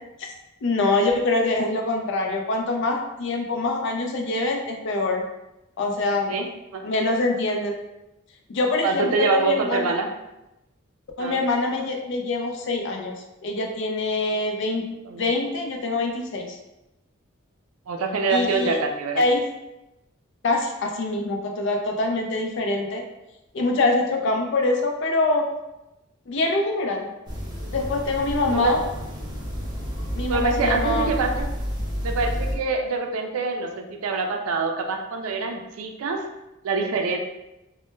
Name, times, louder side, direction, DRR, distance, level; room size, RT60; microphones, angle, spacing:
voice 1, 0.6-5.2 5.8-6.3 6.8-7.8 8.5-9.9 11.2-13.1 13.4-14.8 15.2-16.6 18.3-18.8 19.2-19.4 20.4-23.0 23.5-25.4 26.3-27.1 27.7-28.8 30.1-31.1, left 2 dB, 60° left, 2 dB, 0.4 m, -24 dB
voice 2, 8.8-10.1 11.2-11.4 15.1-15.3 17.9-19.2 28.5-28.7 30.3-31.5 32.0-36.2 36.6-37.2, right 4 dB, 85° right, 3 dB, 0.4 m, -25 dB
sound 1, 27.3-32.6, equal, 20° right, 0.4 m, -30 dB
2.1 x 2.1 x 3.0 m, 0.95 s
head